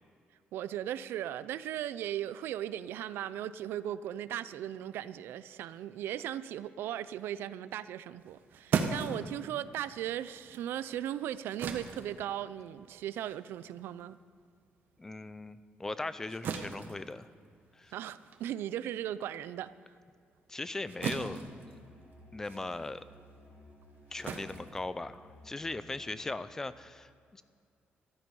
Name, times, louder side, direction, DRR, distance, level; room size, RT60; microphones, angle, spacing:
voice 1, 0.5-14.2 17.9-19.7, right 11 dB, 85° right, 15 dB, 0.5 m, -37 dB
sound 1, 8.2-15.0 15.3-25.5, right 6 dB, 60° right, 1.2 m, -40 dB
voice 2, 15.0-17.3 17.7-17.9 20.5-21.4 22.3-23.0 24.1-27.4, left 2 dB, 15° left, 14 dB, 0.5 m, -39 dB
Musical instrument, 20.9-26.4, equal, 60° left, 3.8 m, -57 dB
14.0 x 13.5 x 5.5 m, 2.3 s
cardioid pair, 165°, 4 cm